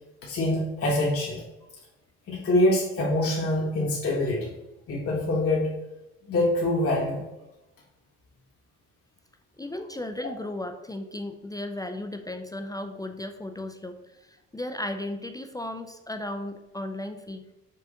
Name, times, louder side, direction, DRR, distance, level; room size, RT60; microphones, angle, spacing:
voice 1, 0.2-1.4 2.3-4.5 4.9-5.8 6.2-7.2, left 1 dB, 50° left, -4 dB, 1.1 m, -25 dB
voice 2, 9.6-17.5, left 1 dB, 15° left, 6 dB, 0.3 m, -35 dB
5.5 x 2.4 x 3.8 m, 0.96 s
cardioid pair, 90°, 30 cm